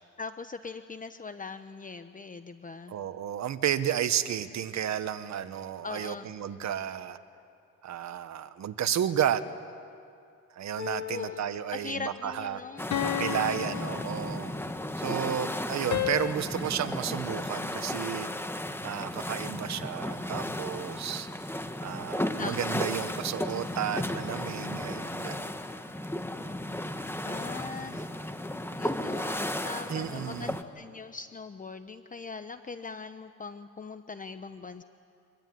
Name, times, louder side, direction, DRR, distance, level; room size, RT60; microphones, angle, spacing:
voice 1, 0.0-3.0 5.8-6.3 11.1-11.4 11.7-12.9 13.6-14.0 22.4-22.8 27.2-28.1 28.8-34.8, left 4 dB, 25° left, 10 dB, 1.0 m, -41 dB
voice 2, 2.9-7.2 7.8-9.4 10.5-12.6 13.0-14.5 15.0-18.3 18.8-21.3 21.8-25.5 29.9-30.5, right 10 dB, 65° right, 11 dB, 1.4 m, -32 dB
sound 1, 10.8-11.8 12.9-14.8 15.9-16.3, left 11 dB, 65° left, 1.3 m, -33 dB
sound 2, 12.8-30.6, left 1 dB, 10° left, 1.6 m, -34 dB
26.0 x 23.0 x 9.5 m, 2.5 s
cardioid pair, 90°, 30 cm